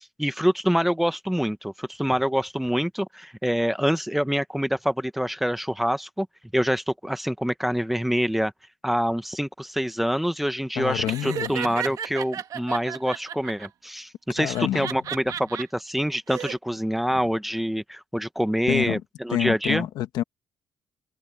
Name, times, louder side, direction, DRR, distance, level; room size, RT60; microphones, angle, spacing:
voice 1, 0.2-6.3 6.5-8.5 8.8-19.9, equal, ahead, 1.0 m, -26 dB
voice 2, 10.8-11.5 14.4-14.9 17.1-17.2 18.7-19.0 19.3-20.2, left 12 dB, 90° left, 1.2 m, -27 dB
Laughter, 11.1-13.7 14.5-15.6 16.1-16.6, right 9 dB, 65° right, 1.3 m, -33 dB
cardioid pair, 110°, 7 cm